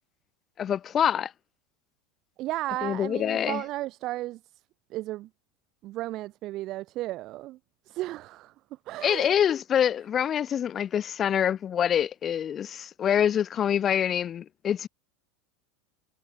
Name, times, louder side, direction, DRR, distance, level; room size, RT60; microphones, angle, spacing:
voice 1, 0.6-1.3 2.8-3.6 9.0-14.9, left 9 dB, 25° left, 1.3 m, -25 dB
voice 2, 2.4-4.4 4.9-5.3 5.8-7.6 7.9-8.5 8.9-9.3, right 16 dB, 40° right, 2.9 m, -34 dB
supercardioid pair, 150°, 0 cm